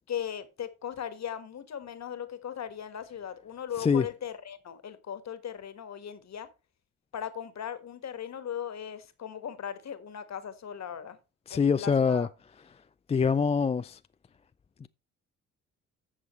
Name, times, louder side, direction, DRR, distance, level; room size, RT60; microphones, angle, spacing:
voice 1, 0.1-6.5 7.1-11.2 11.5-12.3, left 9 dB, 45° left, 1.6 m, -38 dB
voice 2, 11.5-12.3 13.1-14.0 14.8-14.9, left 5 dB, 15° left, 0.4 m, -24 dB
15.0 x 6.2 x 3.2 m
hypercardioid pair, 50°, 37 cm